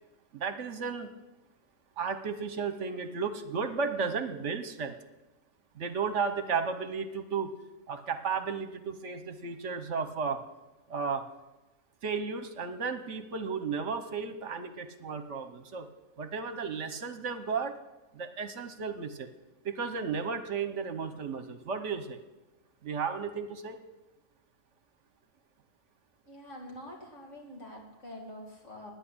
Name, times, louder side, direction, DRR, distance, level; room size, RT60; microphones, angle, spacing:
voice 1, 0.3-1.1 2.0-5.0 5.8-7.5 7.9-10.4 10.9-11.2 12.0-15.9 16.2-17.7 18.1-19.3 19.6-22.2 22.8-23.8, right 5 dB, 60° right, 9 dB, 1.2 m, -34 dB
voice 2, 26.2-28.9, left 1 dB, 60° left, 0 dB, 2.8 m, -46 dB
9.9 x 8.2 x 9.8 m, 1.1 s
omnidirectional pair, 1.4 m